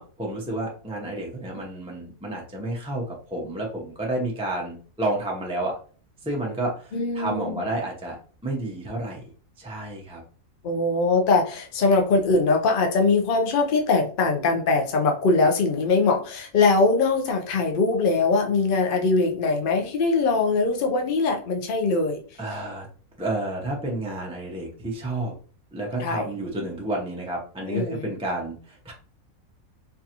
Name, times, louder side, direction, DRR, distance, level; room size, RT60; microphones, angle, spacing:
voice 1, 0.0-5.8 6.2-8.2 8.4-9.3 9.6-10.2 22.4-22.9 23.2-25.3 25.7-28.9, right 1 dB, 5° right, 0.4 m, -30 dB
voice 2, 6.9-7.6 10.6-22.2 26.0-26.3 27.7-28.1, left 3 dB, 50° left, 0.7 m, -22 dB
4.6 x 2.5 x 2.8 m
omnidirectional pair, 1.5 m